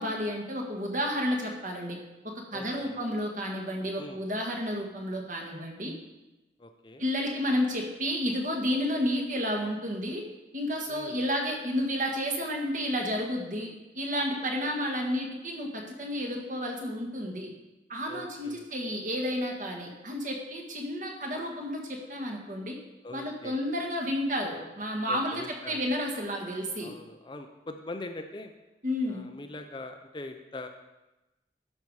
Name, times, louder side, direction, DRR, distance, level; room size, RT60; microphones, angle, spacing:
voice 1, 0.0-2.0 2.5-5.9 7.0-10.2 10.5-13.7 13.9-17.5 17.9-22.7 23.1-26.9 28.8-29.2, equal, 45° right, 1 dB, 1.6 m, -31 dB
voice 2, 2.5-3.0 4.0-4.2 6.6-7.0 10.9-11.3 18.1-18.7 23.0-23.6 25.1-25.9 26.8-28.5 29.1-30.7, left 2 dB, 25° left, 6 dB, 0.5 m, -42 dB
12.0 x 5.5 x 4.7 m, 1.0 s
head